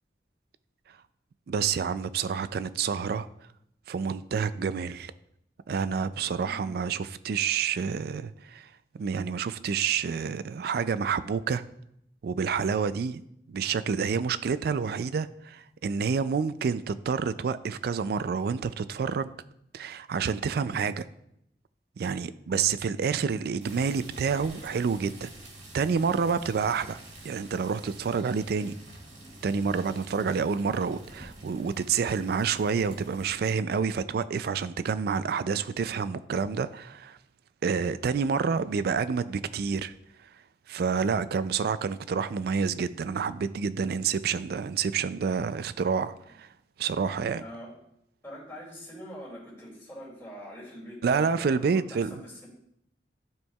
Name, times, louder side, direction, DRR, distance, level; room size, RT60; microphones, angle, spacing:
voice 1, 1.5-3.3 3.9-5.1 5.7-8.7 8.9-11.6 12.2-13.2 13.5-19.3 19.7-21.0 22.0-25.3 25.7-27.0 27.2-28.8 29.4-37.2 37.6-39.9 40.2-40.3 40.7-46.5 46.8-47.4 51.0-52.2, right 6 dB, 55° right, 0.3 m, -28 dB
voice 2, 6.4-6.7 47.4-47.8 48.2-52.5, equal, 15° left, 2.4 m, -44 dB
sound 1, 23.6-33.4, right 1 dB, 80° right, 1.9 m, -48 dB
12.5 x 4.4 x 2.3 m
head